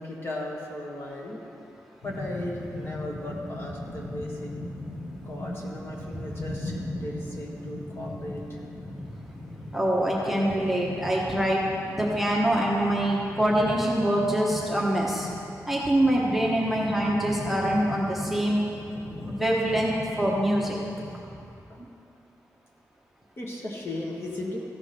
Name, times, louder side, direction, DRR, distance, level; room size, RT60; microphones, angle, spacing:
voice 1, 0.0-1.4 2.0-4.5 5.2-8.6 23.4-24.6, left 1 dB, 40° left, -2 dB, 1.5 m, -36 dB
sound 1, 2.0-21.2, left 1 dB, 75° left, 2.0 m, -38 dB
voice 2, 9.7-15.3 15.7-18.6 19.2-19.9 20.2-20.7 21.8-21.9, right 1 dB, 5° right, -4 dB, 1.0 m, -25 dB
14.5 x 4.9 x 5.9 m, 2.6 s
wide cardioid pair, 160°, 6 cm